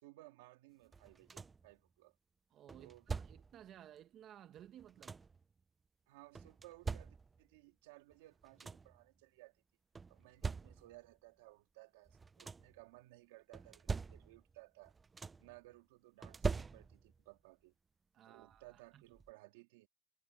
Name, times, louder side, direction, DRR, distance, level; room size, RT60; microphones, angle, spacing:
voice 1, 0.0-2.2 2.8-3.1 6.1-9.6 10.1-15.0 15.4-17.7 18.3-19.9, right 20 dB, 85° right, 2.5 m, -60 dB
sound 1, 0.9-1.7 2.7-3.6 4.6-5.4 6.4-7.6 8.1-8.2 8.4-9.0 10.0-11.1 12.1-12.8 13.5-14.6 14.8-15.6 16.2-17.2 18.5-18.6 19.1-19.3, right 4 dB, 25° right, 0.7 m, -43 dB
voice 2, 2.5-5.2 18.1-19.0, right 11 dB, 50° right, 1.7 m, -57 dB
supercardioid pair, 100°, 0 cm